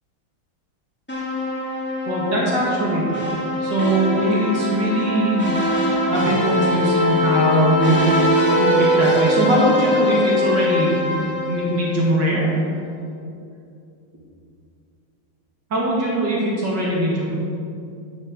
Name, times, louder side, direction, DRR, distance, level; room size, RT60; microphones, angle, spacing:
sound 1, 1.1-12.3, left 1 dB, 5° left, 2.1 m, -22 dB
voice 1, 2.1-3.0 3.6-5.5 6.1-8.2 8.6-12.6 15.7-17.3, right 1 dB, 60° right, -5 dB, 2.7 m, -21 dB
9.7 x 8.2 x 6.9 m, 2.5 s
omnidirectional pair, 2.2 m